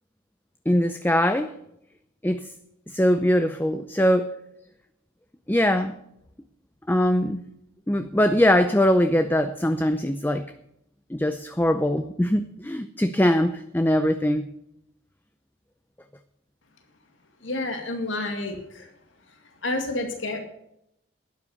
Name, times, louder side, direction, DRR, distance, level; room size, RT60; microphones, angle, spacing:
voice 1, 0.7-1.5 2.2-2.5 2.9-4.3 5.5-5.9 6.9-7.4 7.9-10.5 11.1-14.5, equal, 10° left, 9 dB, 0.5 m, -22 dB
voice 2, 17.4-18.9 19.6-20.4, left 2 dB, 80° left, 4 dB, 2.2 m, -29 dB
12.0 x 9.9 x 6.6 m, 0.79 s
head